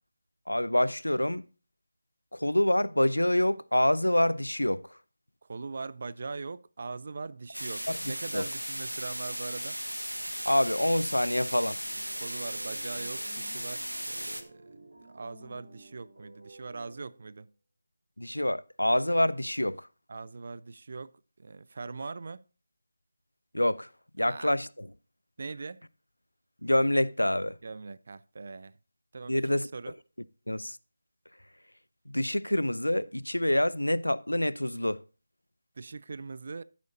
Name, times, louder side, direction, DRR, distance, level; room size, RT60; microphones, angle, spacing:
voice 1, 0.5-1.4 2.3-4.8 8.0-8.4 10.5-11.8 18.2-19.9 23.5-23.9 24.2-24.9 26.6-27.6 29.3-29.7 30.5-30.8 32.1-35.0, left 1 dB, 85° left, 0.5 m, -26 dB
voice 2, 5.5-9.8 12.2-17.5 20.1-22.4 24.2-24.5 25.4-25.8 27.6-28.7 29.1-29.9 35.8-36.6, right 4 dB, 45° right, 0.5 m, -41 dB
sound 1, 7.5-14.4, equal, 90° right, 1.4 m, -36 dB
sound 2, 11.8-17.3, right 1 dB, 65° right, 4.0 m, -53 dB
14.0 x 8.5 x 2.7 m
figure-of-eight pair, 160°, 0 cm